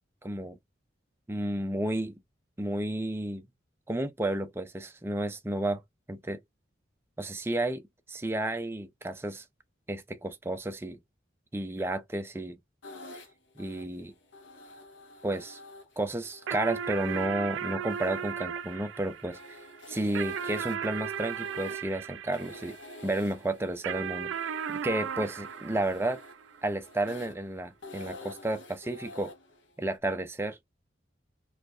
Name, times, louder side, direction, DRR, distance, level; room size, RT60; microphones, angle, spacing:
voice 1, 0.2-0.6 1.3-2.2 2.6-3.5 3.9-5.8 6.1-6.4 7.2-9.4 9.9-11.0 11.5-12.6 13.6-14.1 15.2-15.6 16.0-19.6 19.9-22.8 23.0-26.2 26.6-29.3 29.8-30.6, right 1 dB, 15° right, 0.4 m, -32 dB
sound 1, 12.8-30.0, left 2 dB, 80° left, 1.2 m, -50 dB
sound 2, 16.5-23.2 23.8-26.7, right 8 dB, 90° right, 0.4 m, -36 dB
4.1 x 2.8 x 2.4 m
head